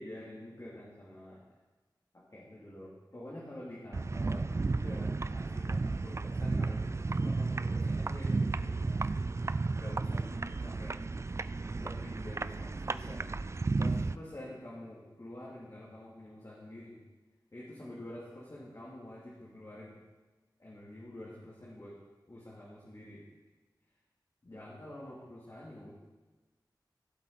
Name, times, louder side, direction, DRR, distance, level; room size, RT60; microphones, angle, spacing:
voice 1, 0.0-1.4 2.1-9.3 9.7-11.2 11.7-13.3 13.7-17.0 17.5-20.0 20.6-21.9 22.3-23.2 24.4-25.9, left 1 dB, 45° left, -7 dB, 2.8 m, -47 dB
sound 1, 3.9-14.2, right 3 dB, 35° right, 0.4 m, -33 dB
16.5 x 7.7 x 4.1 m, 1.2 s
wide cardioid pair, 70°, 8 cm